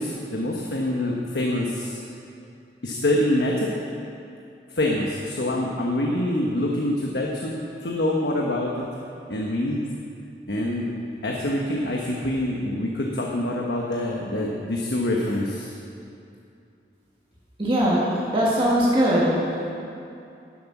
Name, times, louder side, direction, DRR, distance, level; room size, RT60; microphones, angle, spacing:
voice 1, 0.0-2.0 2.8-3.7 4.7-8.9 9.3-9.9 10.5-10.9 11.2-15.7, left 1 dB, 75° left, -1 dB, 1.2 m, -25 dB
voice 2, 17.6-19.3, equal, 30° right, -6 dB, 1.8 m, -20 dB
11.5 x 10.5 x 6.0 m, 2.6 s
head